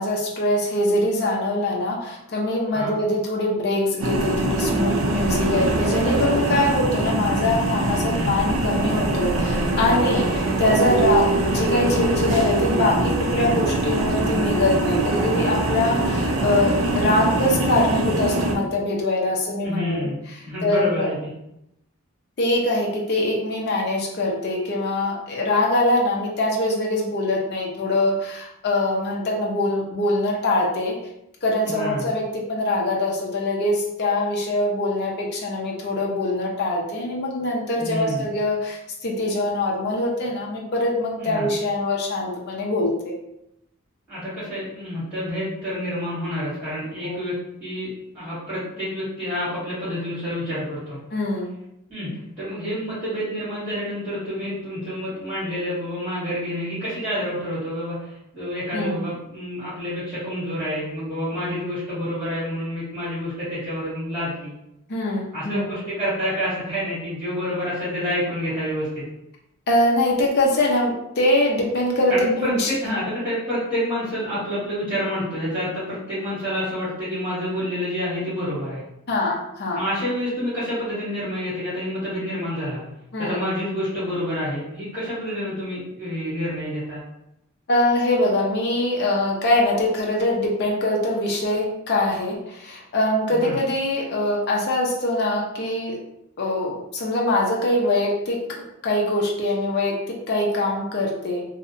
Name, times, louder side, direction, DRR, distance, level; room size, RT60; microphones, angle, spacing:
voice 1, 0.0-20.1 20.6-21.1 22.4-30.9 31.4-43.1 47.0-47.1 51.1-51.6 58.7-59.0 64.9-65.7 69.7-73.1 79.1-79.8 83.1-83.4 87.7-96.0 96.4-98.6 98.8-101.5, left 1 dB, 50° left, -2 dB, 0.5 m, -23 dB
sound 1, 4.0-18.5, right 2 dB, 70° right, 0.5 m, -23 dB
voice 2, 19.6-20.1 20.4-21.3 31.6-32.1 37.7-38.2 41.2-41.5 44.1-51.0 51.9-64.6 65.3-69.0 72.1-78.8 79.7-82.8 83.2-87.0 93.3-93.6, equal, 5° right, -11 dB, 1.4 m, -28 dB
2.7 x 2.0 x 2.5 m, 0.83 s
head